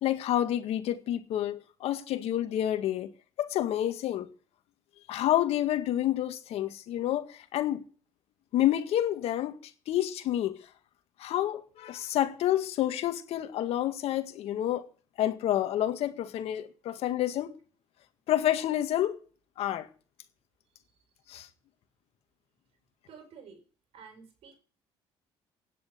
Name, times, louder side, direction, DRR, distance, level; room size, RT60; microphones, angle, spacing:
voice 1, 0.0-3.1 3.4-4.3 5.1-7.8 8.5-9.6 9.9-10.6 11.2-14.9 15.2-17.6 18.3-19.2 19.6-19.9 21.3-21.5, left 12 dB, 70° left, 2.0 m, -29 dB
voice 2, 23.1-23.6 23.9-24.6, right 6 dB, 65° right, 5.5 m, -50 dB
16.5 x 10.5 x 6.8 m
supercardioid pair, 80°, 11 cm